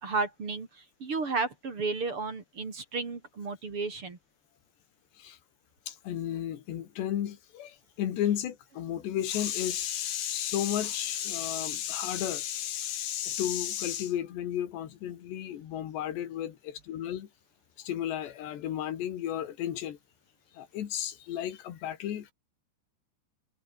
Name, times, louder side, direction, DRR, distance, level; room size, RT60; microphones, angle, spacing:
voice 1, 0.0-0.7 1.0-4.2, right 4 dB, 30° right, 3.6 m, -32 dB
voice 2, 5.9-17.3 17.8-20.0 20.5-22.3, left 11 dB, 70° left, 4.3 m, -33 dB
omnidirectional pair, 5.2 m